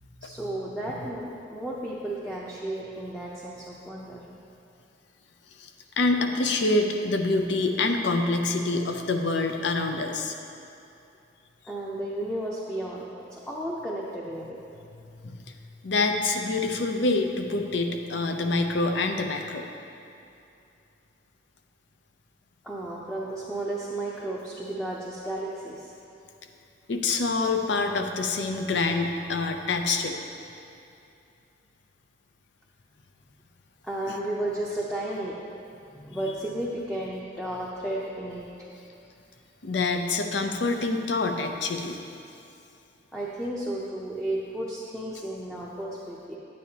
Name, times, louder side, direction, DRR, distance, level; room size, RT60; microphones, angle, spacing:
voice 1, 0.2-4.2 11.7-13.0 13.3-14.6 22.6-25.9 33.8-35.4 35.7-38.7 43.1-46.4, right 1 dB, 5° left, -5 dB, 0.6 m, -33 dB
voice 2, 6.0-10.3 15.2-15.4 15.8-19.7 26.9-30.2 34.1-34.2 39.6-42.0, left 3 dB, 75° left, 5 dB, 0.6 m, -26 dB
10.5 x 8.5 x 2.8 m, 2.7 s
head